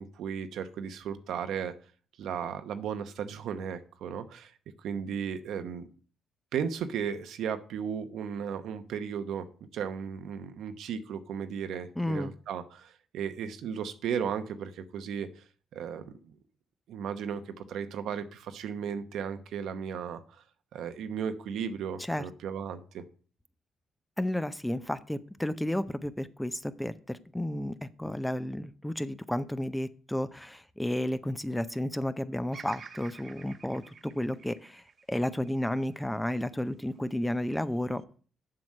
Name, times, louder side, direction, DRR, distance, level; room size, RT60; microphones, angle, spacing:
voice 1, 0.0-1.8 2.2-5.9 6.5-15.4 15.7-16.3 16.9-20.4 20.7-23.0, right 7 dB, 75° right, 9 dB, 0.9 m, -35 dB
voice 2, 12.0-12.3 22.1-22.2 24.2-38.0, left 1 dB, 5° left, 13 dB, 0.6 m, -32 dB
Bird vocalization bird call bird song, 32.5-36.7 37.3-38.0, right 5 dB, 45° right, 0.7 m, -50 dB
7.6 x 5.9 x 6.4 m, 0.42 s
cardioid pair, 90°, 0 cm